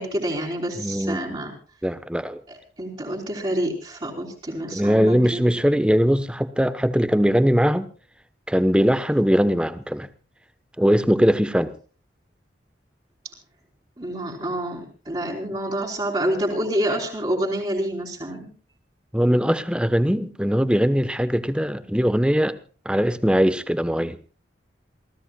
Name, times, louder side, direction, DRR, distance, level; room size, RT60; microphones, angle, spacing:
voice 1, 0.0-1.5 2.5-5.7 14.0-18.5, right 1 dB, 30° right, 3.5 m, -28 dB
voice 2, 0.7-1.2 1.8-2.4 4.7-7.9 8.5-10.1 10.8-11.7 19.1-22.6 22.8-24.3, equal, 5° right, 1.0 m, -21 dB
28.0 x 16.0 x 2.3 m
head